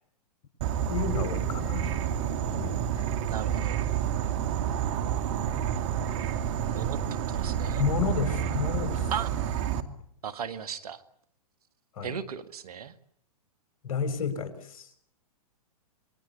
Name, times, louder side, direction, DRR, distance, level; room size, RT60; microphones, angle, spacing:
Insect / Frog, 0.6-9.8, right 9 dB, 50° right, 2.4 m, -29 dB
voice 1, 0.8-1.9 2.5-3.0 7.8-9.1 11.9-12.2 13.8-14.9, left 6 dB, 60° left, 8 dB, 6.2 m, -31 dB
voice 2, 3.3-3.8 6.7-7.0 7.3-7.9 9.1-9.3 10.2-11.0 12.0-12.9, right 8 dB, 70° right, 11 dB, 2.0 m, -36 dB
27.5 x 22.0 x 8.4 m, 0.67 s
hypercardioid pair, 120°, 20 cm